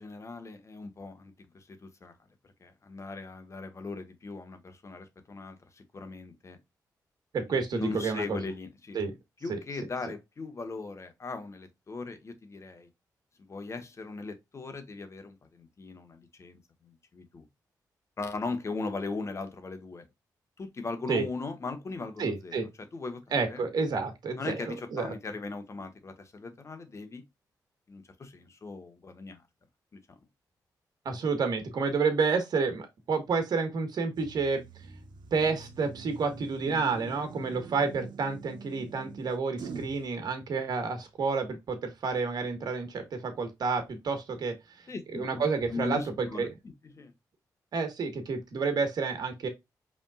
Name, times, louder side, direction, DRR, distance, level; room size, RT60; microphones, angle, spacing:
voice 1, 0.0-2.1 2.4-6.6 7.5-9.0 9.4-12.9 13.4-17.4 18.2-20.1 20.6-22.6 22.9-23.2 23.5-23.6 24.4-27.2 27.9-29.4 29.9-30.0 44.9-45.4 45.7-46.5 46.9-47.1, left 3 dB, 40° left, 1.3 m, -39 dB
voice 2, 7.3-8.4 8.9-9.1 9.5-9.6 21.1-21.2 22.2-22.7 23.3-25.1 31.0-34.6 35.3-44.5 45.1-46.5 47.7-49.5, right 4 dB, 65° right, 1.4 m, -30 dB
sound 1, 34.2-40.0, right 4 dB, 85° right, 1.1 m, -44 dB
5.2 x 3.6 x 2.3 m
cardioid pair, 75°, 7 cm